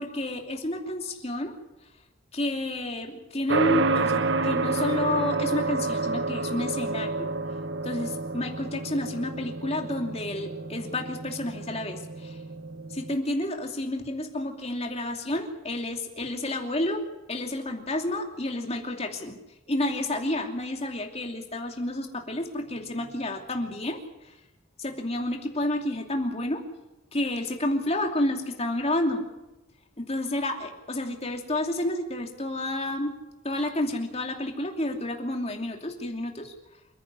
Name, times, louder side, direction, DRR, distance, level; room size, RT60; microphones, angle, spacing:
voice 1, 0.0-1.5 2.3-7.3 7.8-12.4 12.9-17.0 17.3-19.4 19.7-24.4 24.8-26.6 27.1-29.2 30.0-33.2 33.4-36.5, left 1 dB, 30° left, 3 dB, 2.7 m, -30 dB
sound 1, 3.5-13.1, right 3 dB, 60° right, 1.0 m, -29 dB
28.0 x 10.5 x 9.8 m, 0.99 s
head